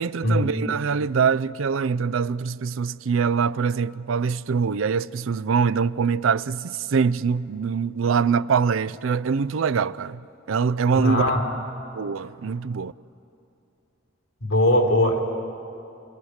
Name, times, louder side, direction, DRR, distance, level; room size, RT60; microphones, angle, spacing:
voice 1, 0.0-10.2 10.5-11.2 12.0-12.9, right 6 dB, 80° right, 0.5 m, -23 dB
voice 2, 11.0-11.5 14.4-15.2, left 1 dB, 85° left, 3.4 m, -20 dB
29.5 x 21.0 x 6.5 m
head